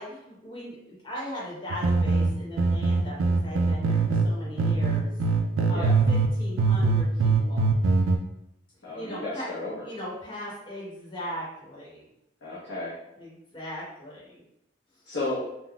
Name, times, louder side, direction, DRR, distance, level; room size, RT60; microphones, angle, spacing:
voice 1, 0.0-5.1 5.7-7.7 8.9-9.5 9.8-12.0 13.2-14.4, equal, 25° left, -6 dB, 1.0 m, -39 dB
sound 1, 1.7-4.3 4.6-6.3 6.6-8.2, right 4 dB, 80° right, 0.3 m, -22 dB
voice 2, 8.8-9.8 12.4-13.0 15.1-15.5, left 2 dB, 70° left, -8 dB, 0.7 m, -33 dB
3.6 x 2.1 x 2.3 m, 0.83 s
head